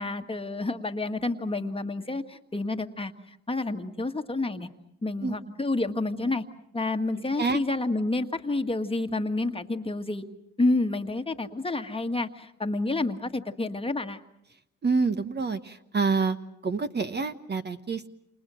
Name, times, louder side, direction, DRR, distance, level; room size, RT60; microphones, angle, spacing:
voice 1, 0.0-4.7 5.0-6.4 6.7-10.2 10.6-14.2, left 2 dB, 20° left, 6 dB, 1.6 m, -29 dB
voice 2, 7.2-7.6 14.8-16.4 16.6-18.1, right 4 dB, 35° right, 9 dB, 1.3 m, -27 dB
28.5 x 28.5 x 6.3 m, 0.80 s
cardioid pair, 90°, 30 cm